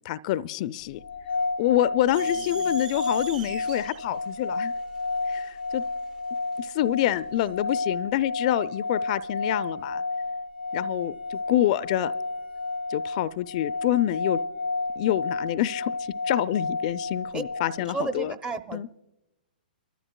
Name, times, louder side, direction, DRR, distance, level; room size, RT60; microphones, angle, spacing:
voice 1, 0.0-1.0 1.6-4.7 5.3-5.8 6.6-10.0 10.7-12.1 12.9-14.4 15.0-18.3 18.7-18.9, left 13 dB, 45° left, 15 dB, 0.4 m, -27 dB
sound 1, 1.0-18.1, left 3 dB, 90° left, 0.6 m, -31 dB
voice 2, 2.1-2.8 17.3-17.4 17.8-19.0, right 3 dB, 15° right, 10 dB, 0.6 m, -34 dB
sound 2, 2.1-6.6, right 7 dB, 60° right, 1.4 m, -44 dB
27.0 x 13.5 x 2.2 m, 0.98 s
hypercardioid pair, 120°, 5 cm